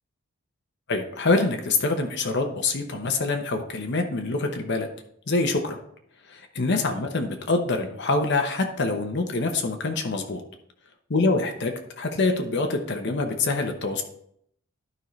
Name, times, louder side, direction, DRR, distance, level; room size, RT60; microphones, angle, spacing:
voice 1, 0.9-4.9 5.3-5.8 6.3-10.4 11.1-14.0, left 3 dB, 55° left, 4 dB, 0.9 m, -25 dB
12.0 x 5.5 x 3.2 m, 0.70 s
head